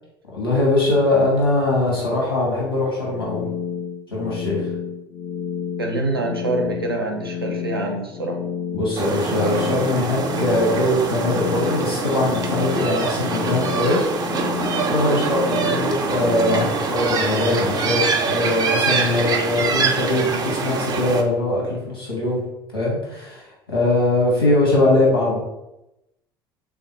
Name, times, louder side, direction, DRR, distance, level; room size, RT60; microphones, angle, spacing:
voice 1, 0.3-3.4 4.1-4.7 8.7-14.4 14.9-18.0 18.3-22.4 22.7-25.4, left 2 dB, 85° left, -4 dB, 0.9 m, -21 dB
sound 1, 3.1-16.7, left 8 dB, 30° left, 0.4 m, -31 dB
voice 2, 5.8-8.4, right 2 dB, 90° right, 1 dB, 0.5 m, -25 dB
sound 2, 9.0-21.2, right 4 dB, 35° right, 0.5 m, -24 dB
3.5 x 2.3 x 2.7 m, 0.92 s
figure-of-eight pair, 60°, 12 cm